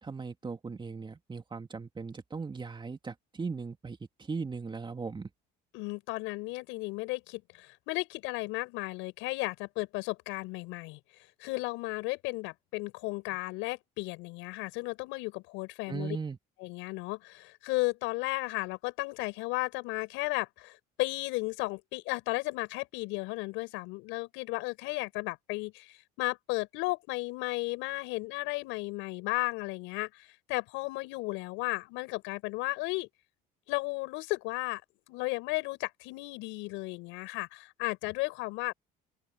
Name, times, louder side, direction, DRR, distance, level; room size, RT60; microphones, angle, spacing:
voice 1, 0.0-4.0 4.3-5.3 15.9-16.4, right 4 dB, 25° right, 2.7 m, -38 dB
voice 2, 5.7-11.0 11.4-16.2 16.6-33.1 33.7-34.8 35.1-38.7, left 24 dB, 80° left, 7.5 m, -34 dB
open air
supercardioid pair, 80°, 20 cm